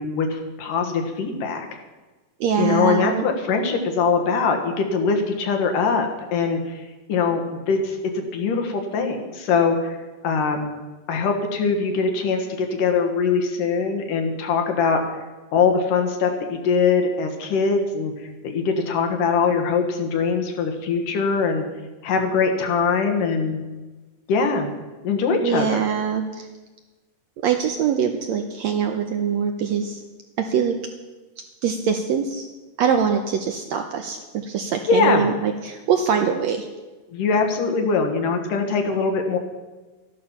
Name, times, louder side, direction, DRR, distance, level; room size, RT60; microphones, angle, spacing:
voice 1, 0.0-1.7 2.6-6.8 7.1-10.0 10.2-10.8 11.1-15.0 15.5-21.6 22.0-23.6 24.3-24.7 25.0-25.8 34.9-35.3 37.1-39.4, left 5 dB, 75° left, 4 dB, 3.0 m, -22 dB
voice 2, 2.4-3.3 25.4-26.5 27.4-30.0 30.4-30.8 31.6-32.5 32.8-36.7, right 7 dB, 75° right, 5 dB, 1.7 m, -23 dB
13.5 x 11.5 x 5.7 m, 1.2 s
omnidirectional pair, 3.9 m